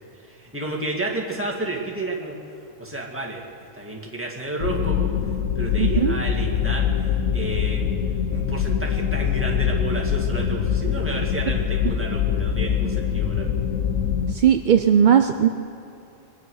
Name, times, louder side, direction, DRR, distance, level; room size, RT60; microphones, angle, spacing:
voice 1, 0.3-2.4 2.8-3.4 3.7-5.1 5.6-7.9 8.3-13.6, right 2 dB, 10° right, -3 dB, 2.2 m, -31 dB
sound 1, 4.6-14.3, left 8 dB, 75° left, 1.2 m, -24 dB
voice 2, 5.8-6.2 14.3-15.5, right 8 dB, 60° right, 7 dB, 0.5 m, -18 dB
23.0 x 9.6 x 6.5 m, 2.7 s
omnidirectional pair, 1.3 m